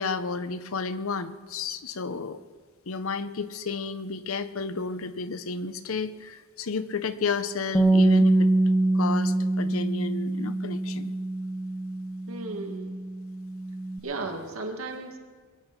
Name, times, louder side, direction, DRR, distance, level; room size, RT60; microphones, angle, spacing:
voice 1, 0.0-2.4 2.9-8.5 8.9-11.1, left 4 dB, 70° left, 13 dB, 0.8 m, -32 dB
Bass guitar, 7.7-14.0, right 2 dB, 5° left, 1.1 m, -24 dB
voice 2, 12.3-13.0 14.0-15.2, right 3 dB, 70° right, 4 dB, 2.0 m, -35 dB
22.0 x 8.8 x 6.0 m, 1.5 s
head